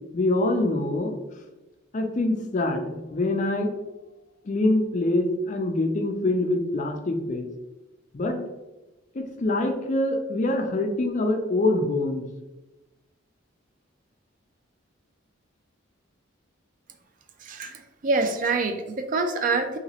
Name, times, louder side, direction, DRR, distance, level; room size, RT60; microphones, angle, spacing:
voice 1, 0.1-1.1 1.9-3.9 4.5-7.4 8.1-8.4 9.1-12.2, left 2 dB, 35° left, 4 dB, 0.4 m, -25 dB
voice 2, 17.4-19.8, right 3 dB, 40° right, 6 dB, 0.3 m, -26 dB
2.9 x 2.9 x 2.8 m, 1.0 s
head